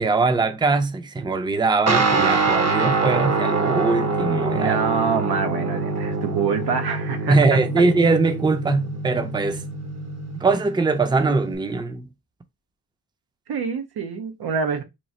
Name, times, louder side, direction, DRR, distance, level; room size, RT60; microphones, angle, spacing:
voice 1, 0.0-4.8 7.3-9.6 10.4-12.1, right 3 dB, 10° right, 0.5 m, -21 dB
Guitar, 1.9-11.5, right 3 dB, 45° right, 0.7 m, -25 dB
voice 2, 4.5-7.6 13.5-14.8, right 6 dB, 90° right, 0.7 m, -25 dB
3.0 x 2.4 x 4.0 m
cardioid pair, 75°, 38 cm